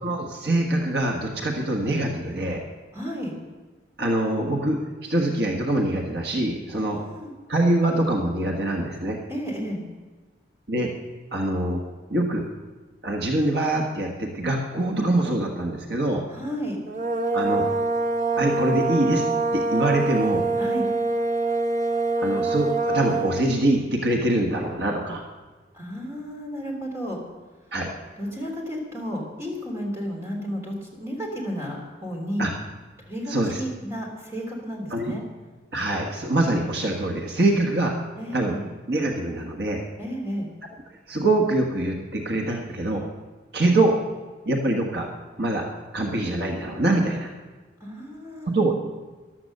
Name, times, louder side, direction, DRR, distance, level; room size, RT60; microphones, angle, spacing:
voice 1, 0.0-2.6 4.0-7.0 7.5-9.2 10.7-10.9 11.3-11.8 12.1-12.4 13.0-16.3 17.3-17.6 18.4-19.2 19.5-20.4 22.2-25.2 27.7-27.9 32.4-32.5 33.3-33.6 34.9-35.1 35.7-37.9 38.3-38.5 38.9-39.8 41.1-43.0 43.5-43.9 44.4-45.1 45.4-45.7 45.9-47.3 48.5-48.7, right 2 dB, 60° right, 1 dB, 1.5 m, -24 dB
voice 2, 2.9-3.3 6.7-7.3 9.3-9.8 16.3-16.8 20.6-20.8 25.7-27.2 28.2-32.5 33.0-35.2 38.2-38.6 40.0-40.5 47.8-48.7, equal, 15° right, -1 dB, 3.3 m, -32 dB
sound 1, 16.9-23.5, right 3 dB, 45° right, 1.5 m, -25 dB
14.0 x 12.0 x 6.6 m, 1.3 s
head